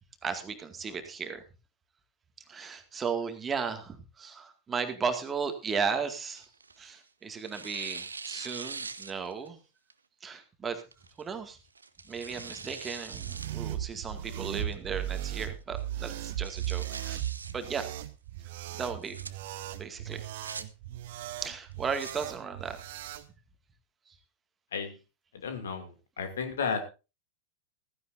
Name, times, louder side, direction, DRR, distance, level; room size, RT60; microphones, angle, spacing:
voice 1, 0.2-1.4 2.5-6.5 6.8-9.6 10.2-10.8 11.2-11.6 12.1-17.3 17.5-17.8 18.8-19.2 19.8-20.2 21.4-22.8, right 6 dB, 20° right, 7 dB, 2.1 m, -35 dB
Tearing, 5.6-7.0 7.4-9.5 9.9-10.0 10.9-11.2 11.8-13.5 13.9-14.0 14.6-15.0 15.4-15.5 15.8-15.9 16.2-17.5 18.8-19.3 20.1-20.6 21.6-22.1, right 4 dB, 75° right, 0.8 m, -42 dB
sound 1, 13.1-23.3, right 12 dB, 55° right, 1.0 m, -37 dB
voice 2, 25.4-26.8, left 6 dB, 65° left, 7 dB, 2.6 m, -33 dB
15.5 x 15.5 x 2.7 m, 0.30 s
figure-of-eight pair, 90°, 0 cm